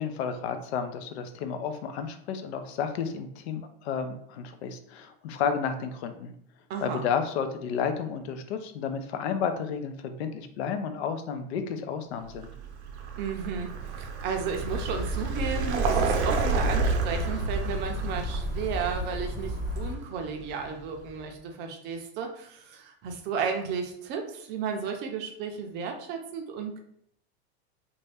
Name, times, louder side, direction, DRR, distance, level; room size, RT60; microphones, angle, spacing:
voice 1, 0.0-6.3 6.8-12.5, left 6 dB, 75° left, 8 dB, 0.5 m, -32 dB
voice 2, 6.7-7.0 13.2-13.7 14.0-26.8, right 6 dB, 35° right, 3 dB, 0.5 m, -33 dB
Vehicle, 12.3-21.1, right 4 dB, 85° right, 0.6 m, -31 dB
sound 1, 14.6-19.9, left 1 dB, 25° left, 0.7 m, -34 dB
2.6 x 2.2 x 3.3 m, 0.68 s
supercardioid pair, 140°, 32 cm